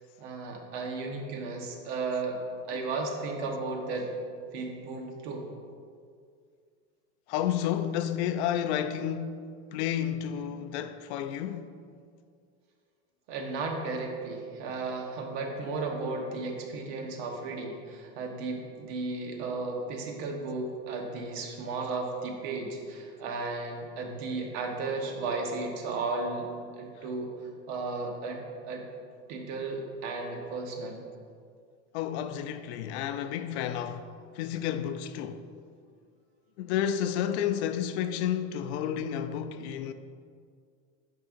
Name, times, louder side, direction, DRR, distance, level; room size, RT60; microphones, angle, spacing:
voice 1, 0.2-2.4 2.7-4.1 4.5-5.5 13.3-27.3 27.7-28.9 29.3-31.0, right 3 dB, 60° right, 1.2 m, -34 dB
voice 2, 7.3-11.8 31.9-35.5 36.6-39.9, left 9 dB, 65° left, 0.5 m, -31 dB
9.2 x 5.5 x 2.6 m
supercardioid pair, 155°, 36 cm